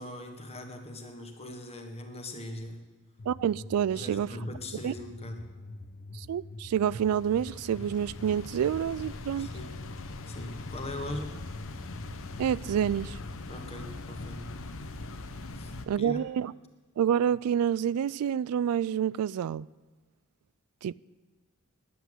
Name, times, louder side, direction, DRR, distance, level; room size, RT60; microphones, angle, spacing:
voice 1, 0.0-2.8 3.9-5.5 9.4-9.8 10.3-11.4 13.5-14.6 15.5-16.2, left 1 dB, 30° left, 1.5 m, -40 dB
sound 1, 3.2-13.6, left 2 dB, 45° left, 0.7 m, -45 dB
voice 2, 3.3-4.3 4.8-4.9 6.1-9.5 12.4-13.2 15.9-16.5 17.0-19.7 20.8-20.9, right 9 dB, 80° right, 0.3 m, -28 dB
sound 2, 6.7-15.9, left 2 dB, 65° left, 0.9 m, -42 dB
10.0 x 8.2 x 9.2 m
head